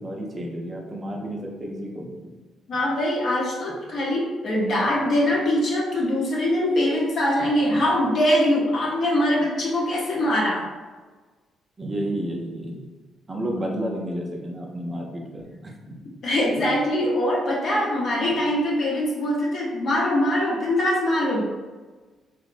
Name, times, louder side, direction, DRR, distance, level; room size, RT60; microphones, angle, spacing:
voice 1, 0.0-2.1 7.7-7.8 11.8-12.8 13.3-16.0 17.5-17.6 18.9-19.0, right 1 dB, 25° right, -1 dB, 0.5 m, -31 dB
voice 2, 2.7-10.6 16.2-21.5, left 1 dB, 55° left, -4 dB, 0.7 m, -23 dB
2.8 x 2.0 x 2.5 m, 1.3 s
cardioid pair, 90°, 0 cm